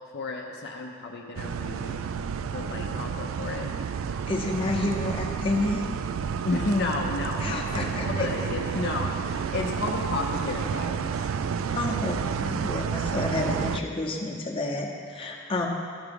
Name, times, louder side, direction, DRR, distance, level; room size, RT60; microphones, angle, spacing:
voice 1, 0.1-2.0 2.5-3.7 6.4-11.1, left 3 dB, 55° left, 0 dB, 0.6 m, -32 dB
sound 1, 1.4-13.8, right 6 dB, 80° right, 0.3 m, -30 dB
voice 2, 4.3-5.9 7.4-8.5 11.7-15.7, left 2 dB, 25° left, -1 dB, 0.8 m, -30 dB
12.0 x 4.7 x 5.3 m, 2.3 s
head